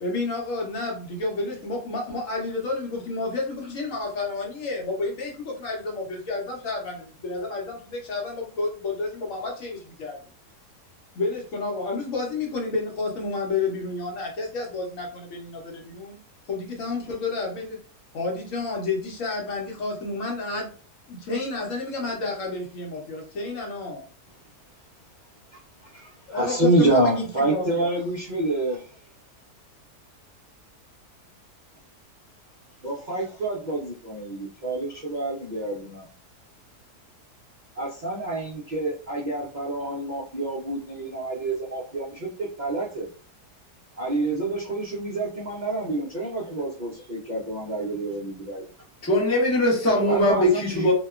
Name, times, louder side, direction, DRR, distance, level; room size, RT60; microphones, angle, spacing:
voice 1, 0.0-10.2 11.1-16.2 16.5-17.8 18.1-20.7 21.1-24.0 26.3-27.9, left 3 dB, 65° left, 1.0 m, -30 dB
voice 2, 25.5-29.0 32.8-36.1 37.7-43.1 44.0-48.7 50.1-50.9, right 2 dB, 55° right, 0.5 m, -27 dB
voice 3, 49.0-50.9, left 1 dB, 20° left, 0.4 m, -21 dB
2.8 x 2.2 x 2.3 m
omnidirectional pair, 1.7 m